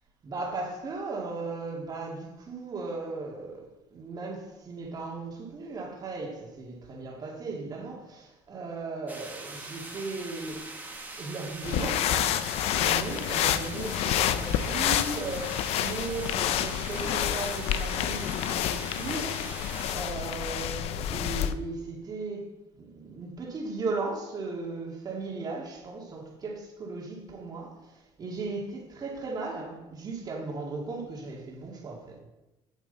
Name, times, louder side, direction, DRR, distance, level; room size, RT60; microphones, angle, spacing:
voice 1, 0.2-10.7 11.2-32.2, right 3 dB, 35° right, 2.5 m, -37 dB
sound 1, 9.1-20.0, right 2 dB, 15° right, 1.6 m, -42 dB
sound 2, 11.6-21.5, left 11 dB, 65° left, 0.6 m, -29 dB
9.3 x 8.2 x 4.2 m
cardioid pair, 115°, 11 cm